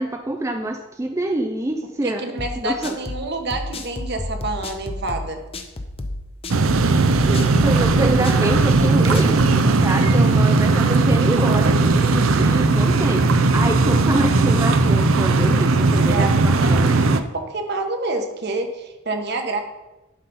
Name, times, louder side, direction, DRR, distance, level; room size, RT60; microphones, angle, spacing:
voice 1, 0.0-2.3 2.6-3.0 7.3-16.9, right 2 dB, 15° right, 4 dB, 0.4 m, -26 dB
voice 2, 2.0-5.4 16.1-19.6, right 2 dB, 55° right, 5 dB, 1.1 m, -28 dB
sound 1, 2.4-9.6, left 2 dB, 30° left, 0.6 m, -31 dB
sound 2, 6.5-17.2, right 3 dB, 80° right, 0.6 m, -17 dB
11.5 x 4.1 x 5.5 m, 1.0 s
head